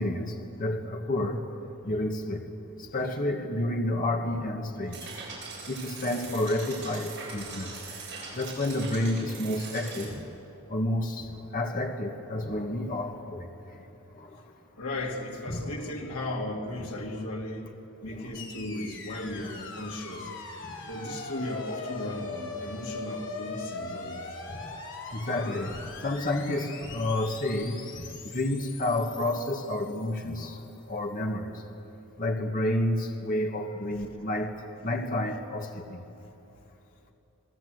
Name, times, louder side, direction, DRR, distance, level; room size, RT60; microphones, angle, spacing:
voice 1, 0.0-1.5 1.8-2.4 2.8-5.1 5.7-7.7 8.3-10.2 10.7-13.8 14.1-14.4 15.5-15.7 18.1-18.3 24.5-24.7 25.1-30.6 30.9-31.6 32.2-36.0, left 1 dB, 40° left, 2 dB, 1.6 m, -30 dB
sound 1, 4.9-10.1, right 4 dB, 55° right, 8.0 m, -41 dB
voice 2, 14.8-17.7 18.0-20.3 20.9-24.2, left 1 dB, 75° left, -1 dB, 2.9 m, -36 dB
sound 2, 18.3-30.6, left 3 dB, 55° left, 3.7 m, -41 dB
28.0 x 19.0 x 8.0 m, 2.9 s
head